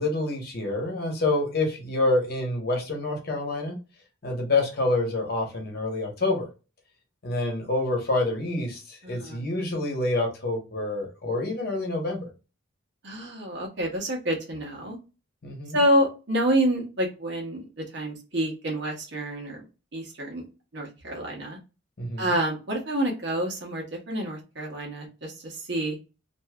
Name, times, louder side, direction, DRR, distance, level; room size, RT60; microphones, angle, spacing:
voice 1, 0.0-3.8 4.2-6.5 7.2-12.2 15.4-15.8 22.0-22.3, left 2 dB, 50° left, 1 dB, 1.0 m, -27 dB
voice 2, 9.0-9.4 13.0-15.0 15.7-19.6 19.9-20.5 20.7-21.6 22.2-26.0, right 1 dB, 60° right, -1 dB, 1.1 m, -28 dB
3.0 x 2.6 x 2.3 m, 0.31 s
head